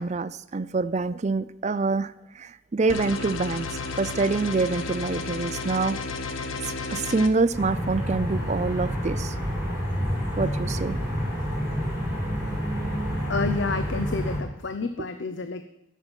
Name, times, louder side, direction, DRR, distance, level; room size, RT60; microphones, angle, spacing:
voice 1, 0.0-6.0 6.6-9.3 10.4-11.0, right 3 dB, 35° right, 15 dB, 0.4 m, -26 dB
sound 1, 2.9-7.3, left 4 dB, 80° left, 1.1 m, -32 dB
sound 2, 7.5-14.4, equal, 15° right, 5.1 m, -28 dB
voice 2, 13.3-15.6, left 4 dB, 65° left, 9 dB, 0.7 m, -29 dB
13.0 x 7.2 x 8.9 m, 0.87 s
head